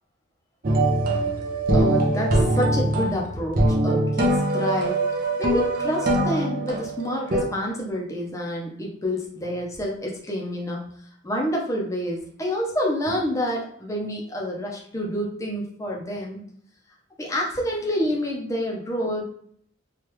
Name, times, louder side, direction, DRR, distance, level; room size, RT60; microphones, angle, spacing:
sound 1, 0.6-7.4, right 1 dB, 45° right, 0.5 m, -23 dB
voice 1, 0.8-1.4 1.7-5.0 5.4-10.9 11.2-16.4 17.2-19.2, equal, 15° left, -2 dB, 0.6 m, -28 dB
3.1 x 2.3 x 3.0 m, 0.64 s
head